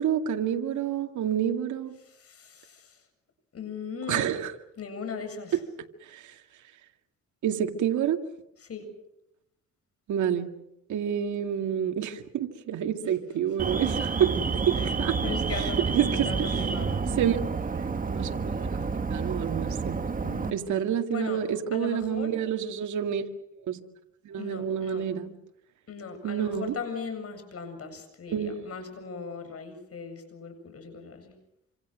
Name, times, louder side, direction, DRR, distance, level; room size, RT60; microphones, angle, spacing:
voice 1, 0.0-2.0 4.1-4.5 6.0-6.3 7.4-8.2 10.1-10.5 10.9-15.2 15.9-16.5 17.2-17.4 18.0-18.7 19.1-20.0 20.5-23.3 23.7-23.8 24.2-25.3 26.2-26.7 28.3-28.6, right 9 dB, 75° right, 5 dB, 2.2 m, -28 dB
voice 2, 2.0-3.0 3.5-4.3 4.8-5.6 8.6-8.9 14.8-14.9 15.2-17.2 20.2-21.4 21.7-22.4 24.4-25.1 25.9-31.3, left 5 dB, 50° left, 7 dB, 7.8 m, -38 dB
Alarm, 13.6-20.5, right 5 dB, 30° right, 1.6 m, -29 dB
27.0 x 26.5 x 6.3 m, 0.81 s
cardioid pair, 90°, 30 cm